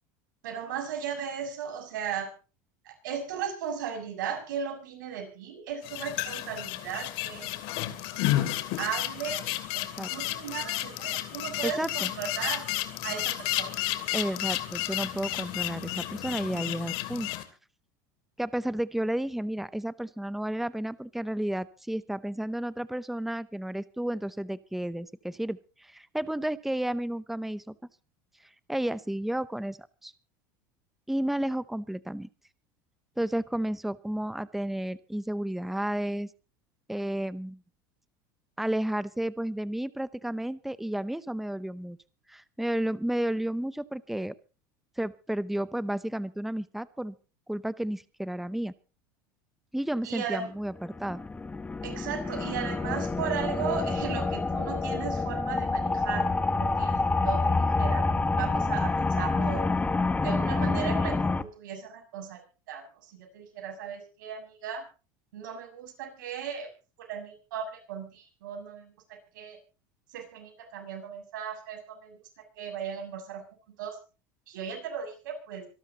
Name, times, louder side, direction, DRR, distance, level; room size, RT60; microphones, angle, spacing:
voice 1, 0.4-2.3 2.9-7.9 8.8-9.8 10.1-12.6 13.0-13.8 50.0-50.5 51.8-57.0 57.2-59.7 60.2-64.8 65.3-66.7 67.0-68.9 69.3-69.6 70.1-72.2 72.6-73.4 73.8-74.0 74.5-75.7, right 7 dB, 85° right, 3 dB, 7.0 m, -36 dB
sound 1, 5.8-17.4, left 15 dB, 65° left, 2.6 m, -32 dB
voice 2, 11.6-12.1 14.1-17.3 18.4-27.7 28.7-30.1 31.1-32.3 33.2-36.3 36.9-37.6 38.6-42.0 42.3-44.3 45.0-47.1 47.5-48.7 49.7-51.2, right 1 dB, ahead, 16 dB, 0.8 m, -32 dB
sound 2, 50.8-61.4, left 3 dB, 15° left, 1.1 m, -27 dB
25.5 x 12.5 x 2.9 m, 0.34 s
supercardioid pair, 105°, 10 cm